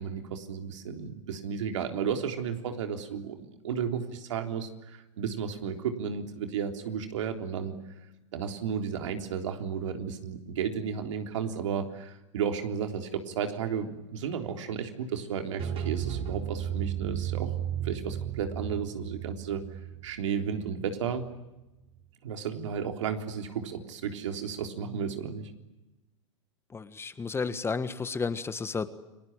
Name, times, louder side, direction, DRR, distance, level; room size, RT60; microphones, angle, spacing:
voice 1, 0.0-7.8 8.3-17.5 17.8-19.6 20.0-21.3 22.2-25.5, right 7 dB, 75° right, 5 dB, 3.6 m, -33 dB
sound 1, 15.6-21.3, right 10 dB, 35° right, 5.0 m, -34 dB
voice 2, 26.7-28.9, left 4 dB, 15° left, 12 dB, 1.6 m, -32 dB
30.0 x 21.0 x 8.8 m, 1.0 s
hypercardioid pair, 110°, 16 cm